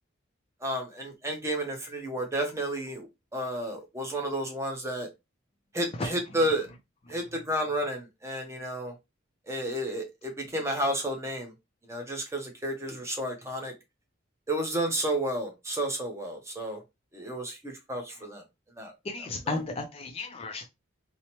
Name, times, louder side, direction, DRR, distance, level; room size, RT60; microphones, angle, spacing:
voice 1, 0.6-5.1 5.7-6.7 7.1-8.9 9.5-11.5 11.9-13.7 14.5-16.8 17.1-18.4 18.8-18.9 19.2-19.6, right 1 dB, 15° right, 0.6 m, -31 dB
voice 2, 19.1-20.7, left 3 dB, 30° left, 0.3 m, -33 dB
2.8 x 2.0 x 2.9 m
head